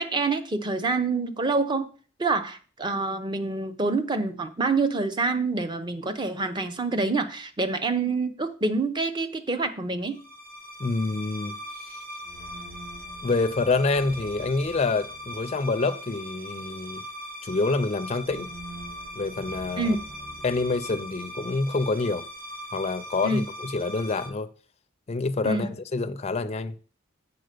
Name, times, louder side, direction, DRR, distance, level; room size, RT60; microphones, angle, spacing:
voice 1, 0.0-1.9 2.2-10.2 19.8-20.0 23.2-23.4 25.4-25.7, right 3 dB, 25° right, 0.7 m, -26 dB
sound 1, 10.1-24.3, equal, 45° right, 2.0 m, -40 dB
voice 2, 10.8-11.6 13.2-17.1 17.4-18.5 19.1-20.0 20.4-22.3 22.7-24.5 25.1-26.7, left 3 dB, 30° left, 0.4 m, -27 dB
7.8 x 4.1 x 6.6 m
head